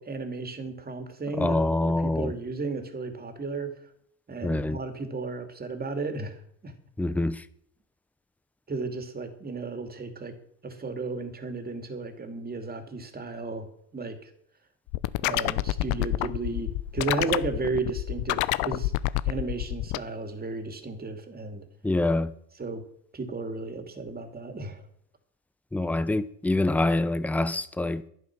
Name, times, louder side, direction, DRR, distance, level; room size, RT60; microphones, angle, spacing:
voice 1, 0.0-3.7 4.3-6.7 8.7-10.4 10.6-13.7 13.9-14.3 15.2-18.9 19.2-21.6 22.6-22.8 23.1-24.8, right 3 dB, 20° right, 2.7 m, -34 dB
voice 2, 1.4-2.3 4.4-4.8 7.0-7.5 21.8-22.3 25.7-28.1, left 2 dB, 5° left, 0.7 m, -25 dB
sound 1, 14.9-20.0, left 18 dB, 75° left, 0.8 m, -27 dB
11.5 x 11.0 x 6.1 m
supercardioid pair, 100°, 42 cm